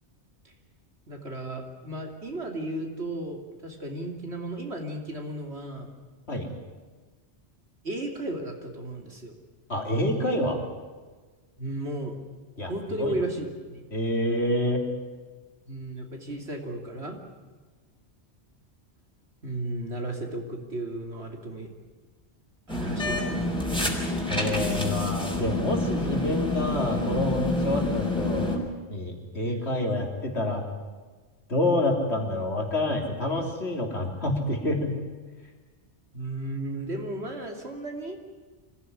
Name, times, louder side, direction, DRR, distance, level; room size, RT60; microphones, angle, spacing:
voice 1, 1.1-5.9 7.8-9.3 11.6-12.1 12.7-13.8 15.7-17.2 19.4-21.7 22.7-23.5 29.4-29.7 36.1-38.2, right 1 dB, 70° right, 2 dB, 3.3 m, -34 dB
voice 2, 9.7-10.6 12.6-12.7 13.0-13.1 13.9-14.8 23.7-23.8 24.3-28.6 28.9-30.6 31.5-34.9, left 1 dB, 75° left, 2 dB, 3.8 m, -27 dB
sound 1, 22.7-28.6, left 2 dB, 5° left, 4.3 m, -28 dB
25.0 x 16.0 x 9.9 m, 1.4 s
omnidirectional pair, 1.1 m